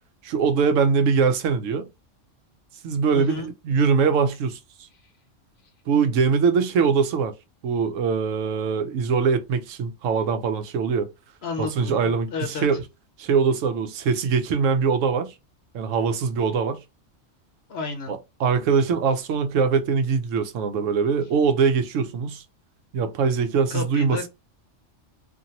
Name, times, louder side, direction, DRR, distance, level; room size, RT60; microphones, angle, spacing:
voice 1, 0.2-1.9 2.8-4.6 5.9-7.3 7.6-11.1 11.6-12.8 13.2-15.3 15.7-16.8 18.1-22.4 22.9-24.2, right 5 dB, 85° right, 1.0 m, -22 dB
voice 2, 3.1-3.5 11.4-12.8 17.7-18.1 23.7-24.3, left 4 dB, 60° left, 1.0 m, -32 dB
2.6 x 2.5 x 2.8 m
omnidirectional pair, 1.3 m